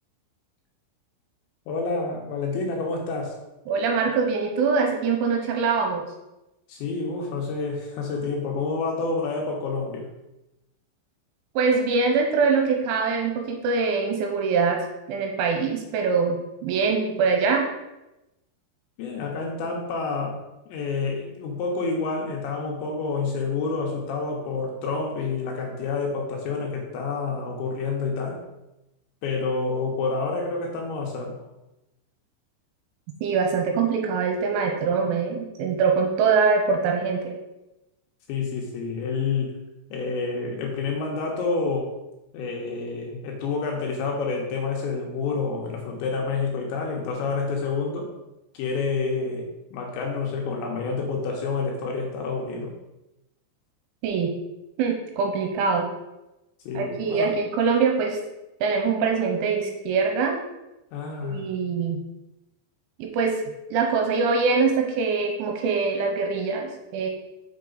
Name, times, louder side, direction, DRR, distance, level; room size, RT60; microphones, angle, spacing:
voice 1, 1.7-3.4 6.7-10.1 19.0-20.4 20.7-28.4 29.2-31.4 38.3-39.5 39.9-41.9 42.3-48.1 48.5-52.7 56.7-57.3 60.9-61.5, left 4 dB, 75° left, 0 dB, 2.9 m, -28 dB
voice 2, 3.7-6.0 11.6-14.8 15.1-16.4 16.6-17.7 33.2-37.3 54.0-54.3 54.8-55.9 56.7-58.2 58.6-60.4 61.2-62.0 63.0-63.4 63.7-67.1, right 5 dB, 80° right, 2 dB, 3.0 m, -23 dB
6.7 x 5.8 x 3.9 m, 0.96 s
omnidirectional pair, 5.9 m